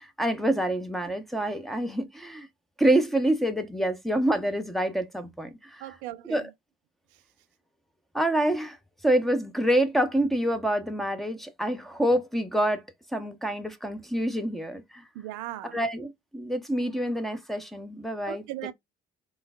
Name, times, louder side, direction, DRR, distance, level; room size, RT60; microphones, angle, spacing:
voice 1, 0.0-2.5 2.8-5.8 6.3-6.4 8.1-8.8 9.0-12.8 13.1-15.0 15.7-18.4, right 1 dB, ahead, 1.0 m, -27 dB
voice 2, 5.8-6.5 7.1-7.2 15.1-15.8 18.3-18.7, right 14 dB, 65° right, 0.6 m, -38 dB
3.9 x 3.7 x 2.3 m
figure-of-eight pair, 50°, 32 cm